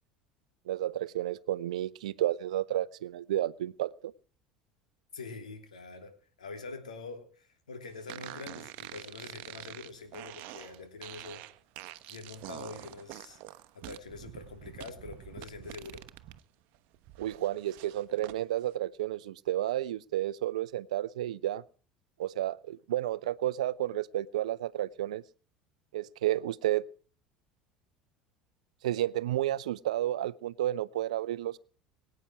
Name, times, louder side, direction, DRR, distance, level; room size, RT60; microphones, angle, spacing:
voice 1, 0.7-3.9 17.2-21.6 22.2-25.2 25.9-26.8 28.8-31.6, right 13 dB, 70° right, 20 dB, 0.6 m, -31 dB
voice 2, 5.1-6.1 6.4-11.4 12.1-13.4 13.7-16.0, left 4 dB, 80° left, 5 dB, 3.0 m, -45 dB
sound 1, 8.1-16.4 16.7-18.4, right 15 dB, 55° right, 1.0 m, -46 dB
23.0 x 9.3 x 4.7 m, 0.41 s
figure-of-eight pair, 70°, 4 cm